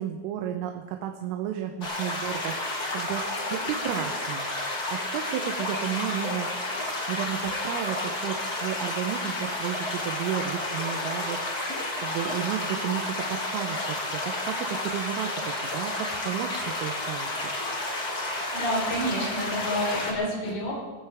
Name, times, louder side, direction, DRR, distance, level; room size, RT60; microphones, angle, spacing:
voice 1, 0.0-3.2 3.5-4.5 4.9-6.5 7.1-17.5, right 10 dB, 90° right, 4 dB, 3.5 m, -33 dB
sound 1, 1.8-20.1, left 2 dB, 35° left, 1.6 m, -31 dB
voice 2, 18.5-20.7, equal, 70° left, -3 dB, 6.5 m, -28 dB
19.5 x 16.0 x 3.5 m, 1.2 s
omnidirectional pair, 5.7 m